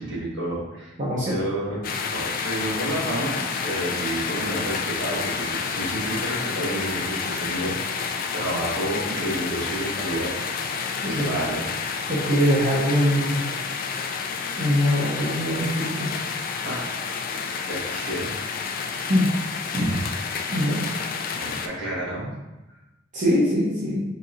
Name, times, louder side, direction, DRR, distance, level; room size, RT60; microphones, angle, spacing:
voice 1, 0.0-0.9 1.3-1.8 2.1-3.3 3.6-10.3 10.6-11.6 16.6-16.9 17.7-18.3 21.3-22.3, right 1 dB, 70° right, -6 dB, 1.4 m, -30 dB
voice 2, 1.0-1.4 11.0-11.2 12.1-13.4 14.6-16.1 19.0-19.3 19.7-20.0 20.5-20.9 23.1-24.0, equal, 40° right, -7 dB, 0.8 m, -22 dB
sound 1, 1.8-21.7, left 5 dB, 45° left, 0.3 m, -30 dB
5.3 x 2.8 x 2.5 m, 1.0 s
head